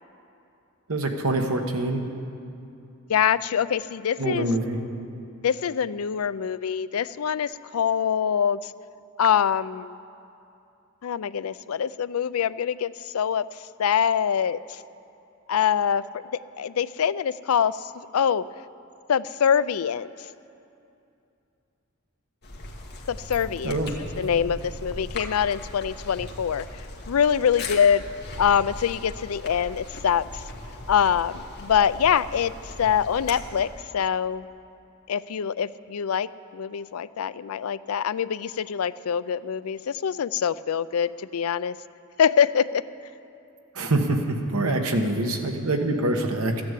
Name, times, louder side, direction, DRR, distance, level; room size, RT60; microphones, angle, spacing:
voice 1, 0.9-2.0 4.2-4.8 23.6-23.9 43.7-46.6, right 2 dB, 85° right, 3 dB, 1.5 m, -25 dB
voice 2, 3.1-4.5 5.4-8.7 9.2-10.0 11.0-13.5 13.8-14.8 15.5-16.1 16.6-18.5 19.1-20.1 23.1-23.8 24.2-26.7 27.1-28.0 28.4-30.4 30.9-32.5 32.8-34.5 35.1-41.7 42.2-42.8, left 8 dB, 85° left, 16 dB, 0.4 m, -24 dB
sound 1, 22.4-33.8, left 2 dB, 50° left, 1.7 m, -39 dB
14.5 x 10.5 x 8.3 m, 2.7 s
head